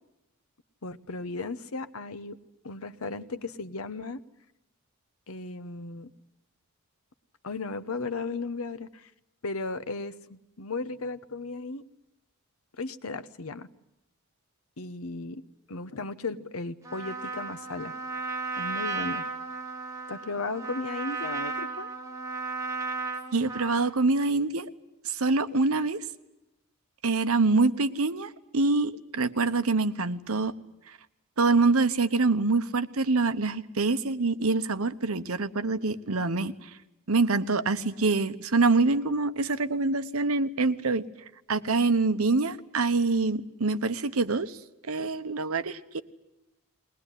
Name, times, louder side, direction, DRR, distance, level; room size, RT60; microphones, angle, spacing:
voice 1, 0.8-2.4 2.6-4.2 5.3-6.1 7.4-9.1 9.4-11.8 12.8-13.7 14.8-15.4 15.7-17.9 18.6-19.2 20.1-21.9, left 3 dB, 75° left, 13 dB, 1.0 m, -35 dB
Trumpet, 16.8-24.0, right 3 dB, 15° right, 1.9 m, -35 dB
voice 2, 23.3-24.7 25.0-26.0 27.0-30.5 31.4-36.7 37.1-41.0 41.5-44.6 44.9-46.0, right 3 dB, 75° right, 11 dB, 1.0 m, -25 dB
21.0 x 19.5 x 10.0 m, 0.92 s
head